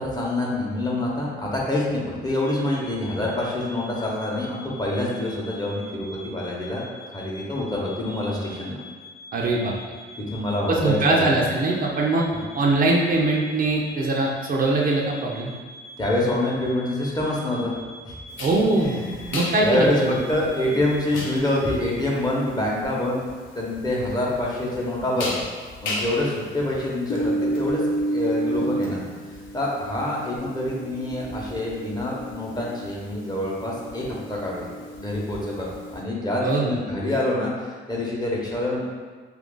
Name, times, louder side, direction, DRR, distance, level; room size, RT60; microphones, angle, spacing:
voice 1, 0.0-6.9 7.1-8.8 10.3-11.4 12.3-12.5 16.0-17.7 18.0-18.1 18.7-23.2 23.5-25.4 25.8-29.0 29.5-34.7 35.0-38.8, left 1 dB, 20° left, -4 dB, 0.9 m, -26 dB
sound 1, 2.4-21.7, left 2 dB, 5° left, 0.5 m, -44 dB
voice 2, 9.3-9.7 10.7-12.3 12.5-15.5 18.4-19.0 19.3-20.1 36.4-36.7, right 2 dB, 45° right, -2 dB, 0.5 m, -22 dB
sound 2, 18.4-36.0, right 1 dB, 80° left, 0.7 m, -32 dB
2.9 x 2.5 x 3.8 m, 1.5 s
cardioid pair, 90°, 20 cm